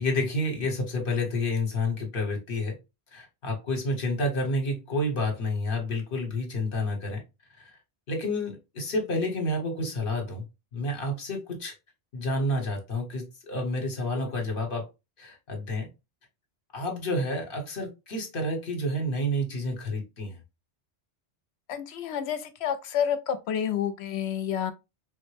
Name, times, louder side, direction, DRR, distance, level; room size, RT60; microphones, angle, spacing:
voice 1, 0.0-2.8 3.1-7.2 7.6-7.7 8.1-10.4 10.7-11.7 12.1-14.9 15.2-15.9 16.7-20.4, left 1 dB, 55° left, 1.2 m, -29 dB
voice 2, 21.7-24.7, left 9 dB, 75° left, 0.8 m, -29 dB
3.6 x 2.1 x 3.2 m
omnidirectional pair, 1.1 m